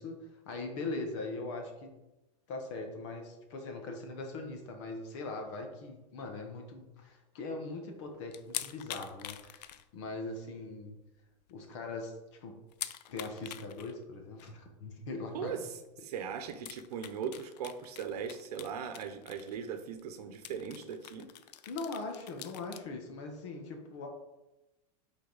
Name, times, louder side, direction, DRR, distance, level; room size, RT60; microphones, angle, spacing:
voice 1, 0.0-1.9 2.5-10.9 11.5-12.6 13.0-15.6 21.7-24.1, left 3 dB, 45° left, 3 dB, 1.3 m, -41 dB
sound 1, 8.3-10.3 10.6-10.7 11.2-11.3 11.5-11.6 12.7-13.9 14.4-14.5 15.8-15.9 16.5-19.7 20.0-20.1 20.3-22.8, left 12 dB, 80° left, 0.5 m, -44 dB
voice 2, 16.0-21.3, right 7 dB, 70° right, 8 dB, 0.9 m, -39 dB
8.1 x 4.0 x 4.1 m, 1.0 s
supercardioid pair, 175°, 21 cm